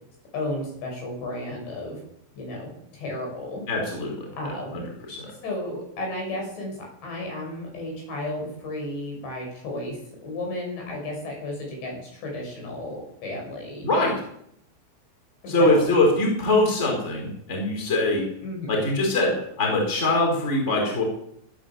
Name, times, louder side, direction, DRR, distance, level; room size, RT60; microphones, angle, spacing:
voice 1, 0.3-2.0 2.3-3.6 4.4-4.8 5.4-13.9 15.4-15.9 18.4-18.8, left 1 dB, 60° left, 0 dB, 8.4 m, -33 dB
voice 2, 3.7-4.1 4.4-4.8 5.1-5.3 13.8-14.2 15.5-18.2 18.7-19.3 19.6-21.0, left 2 dB, 15° left, 0 dB, 4.4 m, -22 dB
17.0 x 10.5 x 7.4 m, 0.71 s
omnidirectional pair, 5.8 m